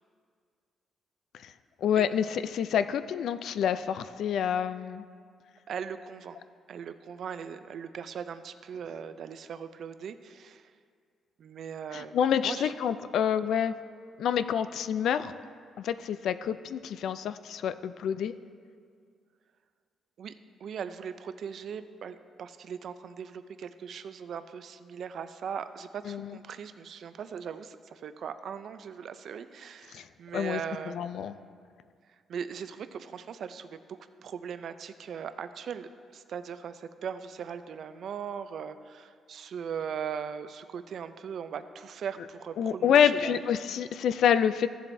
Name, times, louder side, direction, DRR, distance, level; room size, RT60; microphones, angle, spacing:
voice 1, 1.8-5.0 11.9-13.7 14.2-15.3 15.8-18.3 26.1-26.4 29.9-30.1 30.3-30.6 30.9-31.3 42.6-44.7, left 8 dB, 70° left, 12 dB, 0.3 m, -27 dB
voice 2, 5.7-6.4 6.7-10.7 11.4-12.2 12.4-12.7 20.2-20.3 20.6-31.0 32.3-43.4 43.7-43.8, right 7 dB, 60° right, 11 dB, 0.4 m, -39 dB
14.0 x 7.4 x 2.6 m, 2.1 s
cardioid pair, 110°, 0 cm